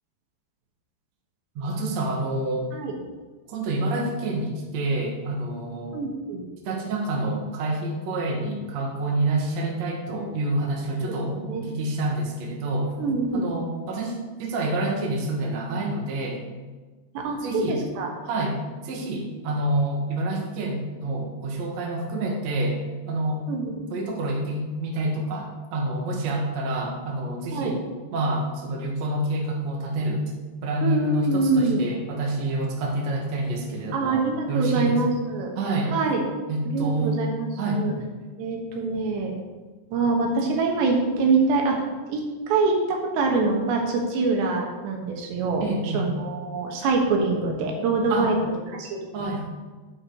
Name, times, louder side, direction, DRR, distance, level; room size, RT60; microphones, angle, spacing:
voice 1, 1.6-2.7 3.5-6.0 6.6-12.9 13.3-16.4 17.4-17.8 18.2-22.8 23.1-23.4 23.9-27.8 28.1-30.2 30.6-34.2 34.5-35.0 35.6-35.9 36.5-37.2 37.6-38.0 45.6-46.1 48.1-48.3 49.1-49.5, right 2 dB, 55° right, 0 dB, 2.1 m, -27 dB
voice 2, 5.9-6.4 11.3-11.6 13.0-13.5 17.2-18.1 23.5-23.8 27.5-27.7 30.8-31.8 33.9-35.5 35.9-36.2 36.7-37.9 38.4-39.3 39.9-41.8 42.1-48.4 48.8-49.3, right 3 dB, 80° right, 1 dB, 3.5 m, -25 dB
9.7 x 7.5 x 4.7 m, 1.3 s
omnidirectional pair, 4.9 m